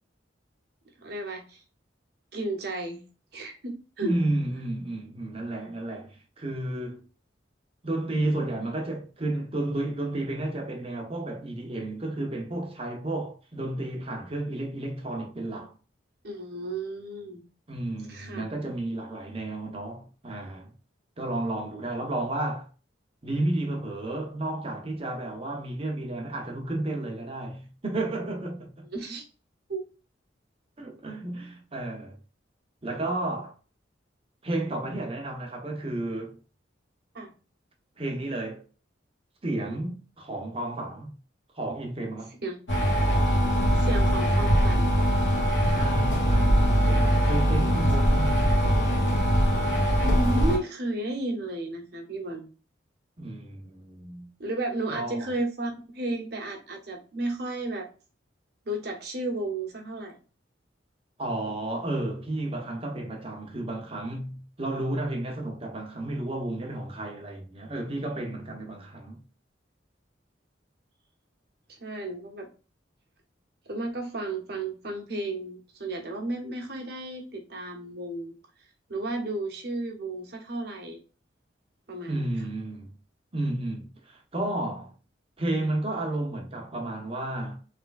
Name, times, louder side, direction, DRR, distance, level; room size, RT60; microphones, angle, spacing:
voice 1, 1.0-1.6 2.3-3.0 3.3-4.2 16.2-17.4 18.1-18.5 28.9-29.2 29.7-29.8 37.1-37.3 42.4-42.6 43.8-44.9 50.0-52.5 54.4-57.9 58.6-60.2 71.7-72.5 73.7-78.3 78.9-81.0 81.9-82.3, right 2 dB, 60° right, 1.2 m, -33 dB
voice 2, 4.0-7.0 7.8-15.7 17.7-20.7 21.2-22.7 23.2-28.9 30.8-32.2 32.8-33.5 34.4-36.4 38.0-38.6 39.4-41.1 41.5-42.4 45.6-49.0 53.2-54.3 54.9-55.3 61.2-69.2 82.1-82.9 83.3-84.9 85.4-87.6, right 1 dB, 30° right, 1.0 m, -32 dB
sound 1, 42.7-50.6, equal, 80° left, 1.5 m, -22 dB
3.6 x 3.4 x 2.3 m
head